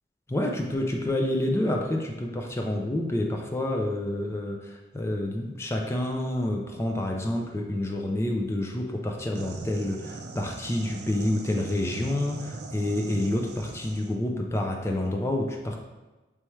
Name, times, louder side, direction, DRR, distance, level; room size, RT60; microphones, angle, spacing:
voice 1, 0.3-15.8, left 1 dB, 15° left, 1 dB, 0.3 m, -28 dB
sound 1, 9.3-14.2, right 3 dB, 60° right, 0.4 m, -40 dB
4.5 x 3.3 x 3.1 m, 1.2 s
head